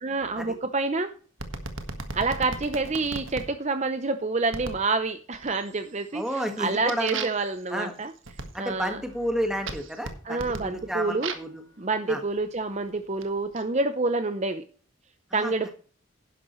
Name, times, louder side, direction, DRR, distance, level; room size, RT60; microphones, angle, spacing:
voice 1, 0.0-1.1 2.1-8.1 8.6-9.0 10.2-11.3 11.8-14.6 15.3-15.7, right 3 dB, 35° right, 9 dB, 0.7 m, -28 dB
sound 1, 1.4-3.5 4.5-4.9 5.3-5.8 6.2-11.6 12.4-13.6, right 4 dB, 70° right, 1.6 m, -38 dB
voice 2, 6.1-7.3 7.7-8.0 8.5-11.6 12.1-12.2 15.3-15.7, equal, 5° right, 5 dB, 1.7 m, -31 dB
11.0 x 11.0 x 3.2 m, 0.41 s
head